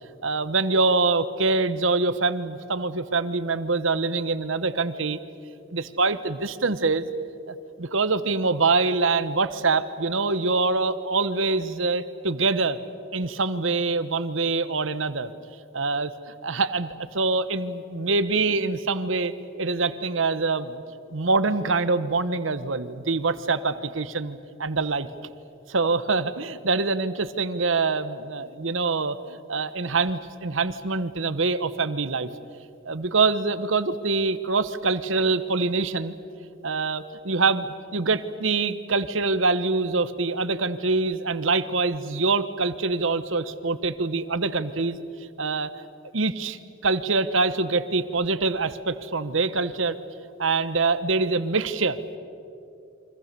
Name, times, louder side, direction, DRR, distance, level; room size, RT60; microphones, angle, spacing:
voice 1, 0.2-5.2 5.7-7.1 7.5-12.8 13.1-15.3 15.7-16.1 16.4-19.3 19.6-20.8 21.1-25.1 25.7-32.3 32.8-36.1 36.6-37.7 37.9-45.7 46.1-50.0 50.4-52.2, right 3 dB, 70° right, 13 dB, 1.1 m, -25 dB
29.5 x 24.5 x 6.8 m, 2.7 s
head